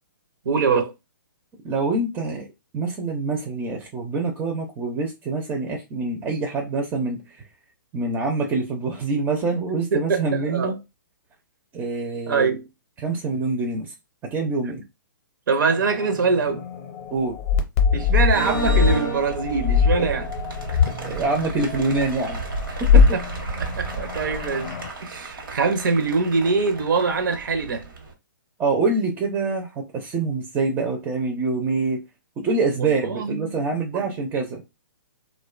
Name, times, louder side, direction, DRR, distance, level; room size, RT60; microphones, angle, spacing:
voice 1, 0.5-0.9 9.9-10.7 12.3-12.7 15.5-16.6 17.9-20.3 22.9-23.2 23.6-24.7 25.0-27.8 33.0-33.6 33.9-34.1, right 4 dB, 70° right, 0.5 m, -23 dB
voice 2, 1.6-2.5 2.7-7.4 7.9-10.7 11.7-12.6 13.0-13.9 14.3-14.8 17.1-17.4 20.0-20.1 21.0-22.4 22.8-23.0 28.6-32.0 32.4-34.6, right 3 dB, 15° right, 0.4 m, -25 dB
sound 1, 15.7-24.9, left 6 dB, 40° left, 0.6 m, -23 dB
sound 2, 18.3-28.1, right 3 dB, 85° right, 0.9 m, -33 dB
2.5 x 2.1 x 2.3 m
hypercardioid pair, 140°, 11 cm